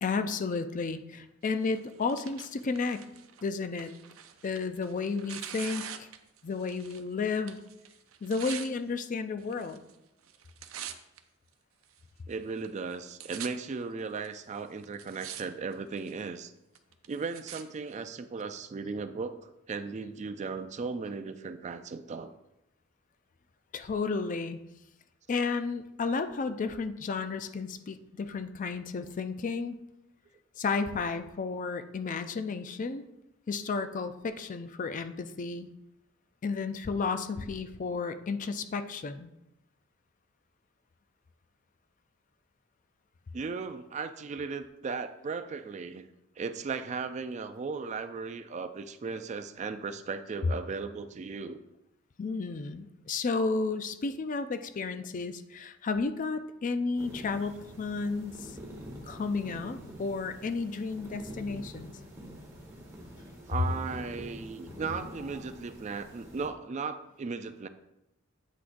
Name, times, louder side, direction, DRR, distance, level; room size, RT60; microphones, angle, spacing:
voice 1, 0.0-3.1 3.4-3.9 4.4-6.1 6.4-7.6 8.2-9.8 23.7-24.6 25.3-29.7 30.6-33.0 33.5-35.7 36.4-39.3 52.2-58.5 59.0-61.9, left 4 dB, 40° left, 10 dB, 0.4 m, -32 dB
Tearing, 1.6-7.1 7.3-8.7 9.4-9.9 10.2-11.2 11.8-11.9 12.6-12.7 12.9-13.5 14.2-14.3 14.8-15.4 15.7-16.2 16.7-17.6 18.4-18.5, right 10 dB, 85° right, 0.6 m, -44 dB
voice 2, 12.3-16.5 17.1-22.3 43.3-46.1 46.4-51.6 63.5-67.7, right 4 dB, 35° right, 10 dB, 0.4 m, -36 dB
sound 1, 57.0-66.5, equal, 15° right, 1.4 m, -46 dB
8.2 x 6.0 x 2.5 m, 0.89 s
head